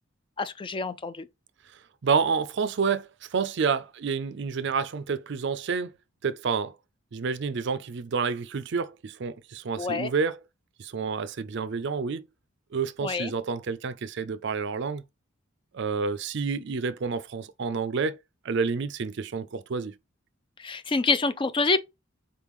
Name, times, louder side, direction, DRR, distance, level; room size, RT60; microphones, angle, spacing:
voice 1, 0.4-1.3 9.8-10.1 13.0-13.3 20.6-21.8, left 4 dB, 25° left, 0.3 m, -27 dB
voice 2, 2.0-6.0 6.2-6.7 7.1-10.4 10.8-12.2 12.7-15.0 15.7-18.2 18.4-19.9, right 5 dB, 60° right, 0.4 m, -29 dB
4.3 x 3.6 x 3.0 m
head